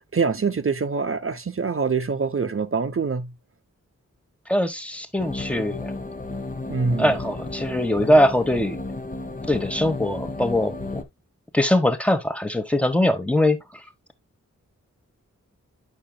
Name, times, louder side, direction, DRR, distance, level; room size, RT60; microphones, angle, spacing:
voice 1, 0.1-3.3 6.7-7.1, right 5 dB, 45° right, 0.8 m, -24 dB
voice 2, 4.5-5.9 7.0-8.8 9.5-11.0 11.5-13.6, left 1 dB, 5° left, 1.2 m, -21 dB
sound 1, 5.2-11.0, left 2 dB, 25° left, 1.1 m, -33 dB
8.7 x 6.2 x 2.2 m
wide cardioid pair, 60°, 30 cm